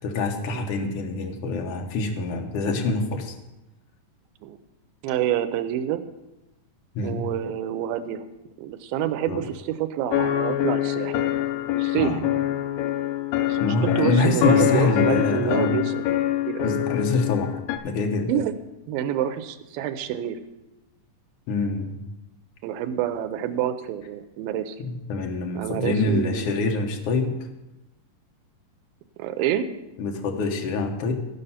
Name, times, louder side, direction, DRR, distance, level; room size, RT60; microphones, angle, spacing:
voice 1, 0.0-3.3 6.9-7.2 9.3-9.4 12.0-12.2 13.6-15.8 16.6-17.5 17.8-18.3 21.5-22.0 24.8-27.4 30.0-31.1, left 3 dB, 65° left, 2 dB, 1.5 m, -25 dB
voice 2, 5.0-6.0 7.0-8.2 8.6-11.2 11.8-12.2 13.4-16.0 16.5-16.8 18.3-18.5 18.9-20.4 22.6-24.8 25.6-26.5 29.2-29.7, right 10 dB, 90° right, 9 dB, 2.4 m, -27 dB
sound 1, 10.1-17.8, left 13 dB, 85° left, 1.6 m, -25 dB
14.0 x 5.4 x 5.6 m, 0.98 s
omnidirectional pair, 4.1 m